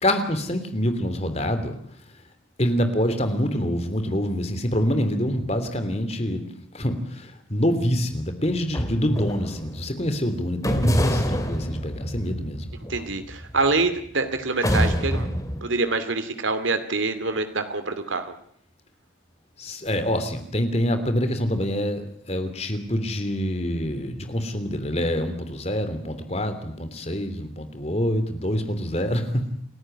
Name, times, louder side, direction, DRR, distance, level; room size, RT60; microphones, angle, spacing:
voice 1, 0.0-1.7 2.6-6.5 6.7-12.6 19.6-29.5, equal, 35° left, 8 dB, 3.1 m, -26 dB
sound 1, 8.5-9.9 10.6-14.1 14.6-15.6, equal, 15° left, 2.5 m, -26 dB
voice 2, 12.9-15.3 15.6-18.3, right 3 dB, 85° right, 9 dB, 2.4 m, -25 dB
29.0 x 14.0 x 9.9 m, 0.64 s
head